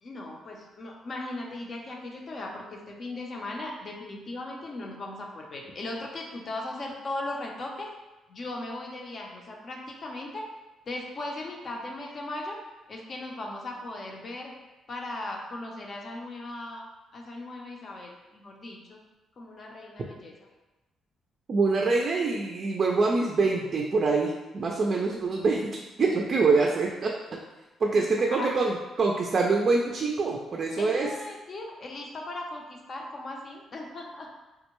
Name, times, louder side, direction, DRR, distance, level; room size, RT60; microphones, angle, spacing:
voice 1, 0.0-7.9 8.3-10.5 10.9-12.6 12.9-14.5 14.9-19.0 19.4-20.3 27.9-28.5 30.8-34.3, left 2 dB, 45° left, 0 dB, 0.6 m, -38 dB
voice 2, 21.5-27.1 27.8-31.1, right 3 dB, 45° right, 0 dB, 0.3 m, -25 dB
3.5 x 2.1 x 3.0 m, 1.1 s
cardioid pair, 90°, 0 cm